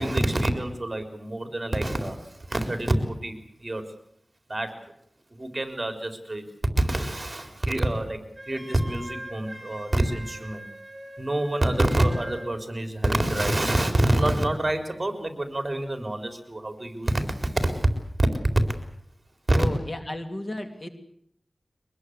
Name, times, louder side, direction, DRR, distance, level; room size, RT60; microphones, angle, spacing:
voice 1, 0.0-3.9 4.5-4.8 5.4-6.4 6.8-8.2 8.5-10.6 11.2-17.9 18.2-18.3 19.5-19.6, right 1 dB, 30° right, 7 dB, 4.1 m, -26 dB
Wind instrument woodwind instrument, 8.3-12.5, right 1 dB, 5° right, 7.1 m, -42 dB
voice 2, 19.5-20.9, left 1 dB, 35° left, 7 dB, 2.8 m, -33 dB
23.0 x 21.5 x 8.2 m, 0.69 s
wide cardioid pair, 75°, 0 cm